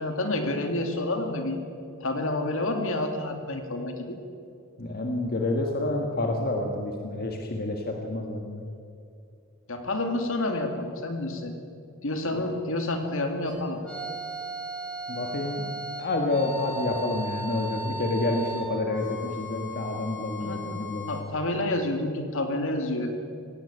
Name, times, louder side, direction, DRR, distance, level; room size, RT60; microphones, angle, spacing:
voice 1, 0.0-1.6 2.0-4.2 9.7-11.5 12.0-13.8 20.4-20.6 21.1-23.1, left 2 dB, 65° left, 5 dB, 2.4 m, -29 dB
voice 2, 4.8-8.6 12.3-12.5 15.1-21.2, left 2 dB, 45° left, 2 dB, 1.7 m, -29 dB
sound 1, 13.5-21.2, equal, 5° left, 6.9 m, -37 dB
18.0 x 16.5 x 8.9 m, 2.5 s
head